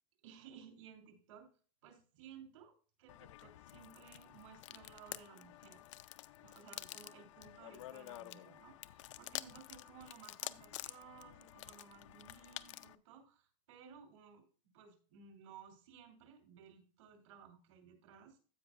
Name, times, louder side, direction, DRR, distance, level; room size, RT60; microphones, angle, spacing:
voice 1, 0.2-1.5 1.8-5.8 6.4-14.5 14.7-18.4, right 7 dB, 75° right, 4 dB, 3.1 m, -58 dB
sound 1, 3.1-13.0, left 15 dB, 70° left, 0.5 m, -49 dB
15.5 x 5.3 x 2.5 m, 0.38 s
supercardioid pair, 175°, 17 cm